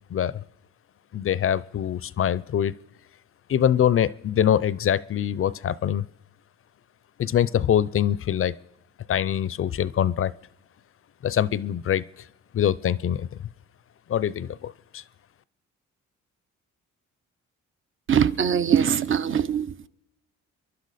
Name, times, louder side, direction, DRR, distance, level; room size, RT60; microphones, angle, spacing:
voice 1, 0.1-0.4 1.1-2.7 3.5-6.1 7.2-8.5 9.1-10.3 11.2-12.0 12.5-13.3 14.1-15.0, left 10 dB, 45° left, 19 dB, 0.6 m, -24 dB
voice 2, 18.1-19.9, right 8 dB, 40° right, 14 dB, 0.7 m, -22 dB
30.0 x 11.5 x 4.2 m, 0.90 s
cardioid pair, 90°, 30 cm